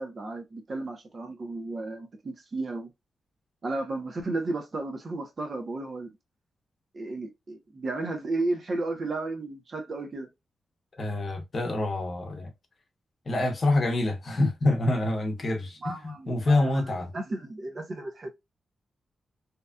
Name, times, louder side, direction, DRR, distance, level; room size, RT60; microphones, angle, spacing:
voice 1, 0.0-2.9 3.6-6.1 6.9-10.3 15.8-18.3, right 2 dB, 45° right, 0.9 m, -33 dB
voice 2, 10.9-12.5 13.3-17.1, left 2 dB, 45° left, 0.9 m, -26 dB
2.8 x 2.4 x 2.2 m
cardioid pair, 95°, 0 cm